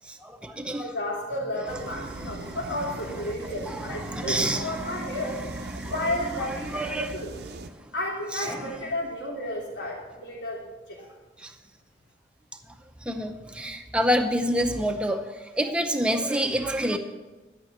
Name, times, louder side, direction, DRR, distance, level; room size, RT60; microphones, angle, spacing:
voice 1, 0.1-0.9 2.1-2.6 3.6-5.3 5.7-5.9 6.6-7.1 8.3-8.6 11.4-11.5 13.0-15.2 15.6-17.0, equal, 5° right, 5 dB, 0.7 m, -28 dB
voice 2, 0.8-5.4 5.8-7.3 7.9-10.6 10.9-11.1, left 1 dB, 85° left, -5 dB, 3.4 m, -32 dB
sound 1, 1.7-7.7, right 2 dB, 65° right, 0.7 m, -40 dB
12.0 x 6.0 x 7.9 m, 1.2 s
head